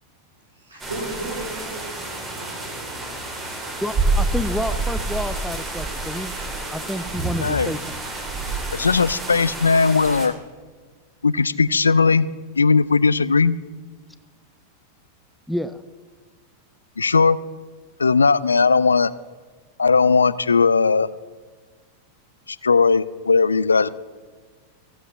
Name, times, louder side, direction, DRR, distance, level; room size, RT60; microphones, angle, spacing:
voice 1, 0.5-3.7, right 2 dB, 70° right, 2 dB, 3.8 m, -36 dB
sound 1, 0.8-10.3, right 2 dB, 20° right, 2.8 m, -28 dB
voice 2, 3.8-6.3 6.7-7.8 15.5-15.8, equal, ahead, 11 dB, 0.5 m, -29 dB
voice 3, 7.4-7.7 8.7-10.3 11.2-13.6 17.0-17.4 18.0-19.1 19.8-21.1 22.5-23.9, left 4 dB, 75° left, 18 dB, 0.4 m, -18 dB
15.0 x 7.9 x 7.3 m, 1.4 s
figure-of-eight pair, 90°, 0 cm